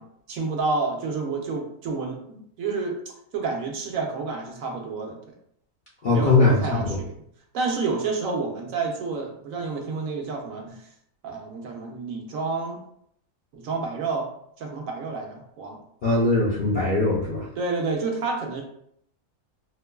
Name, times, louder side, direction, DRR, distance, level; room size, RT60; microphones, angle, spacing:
voice 1, 0.0-3.0 3.3-5.2 6.1-7.1 7.5-10.8 11.2-12.8 13.5-14.3 14.6-15.8 17.6-18.6, right 4 dB, 70° right, 1 dB, 1.1 m, -29 dB
voice 2, 6.0-7.0 16.0-17.5, left 3 dB, 55° left, -6 dB, 0.6 m, -21 dB
4.5 x 2.2 x 2.3 m, 0.69 s
omnidirectional pair, 1.5 m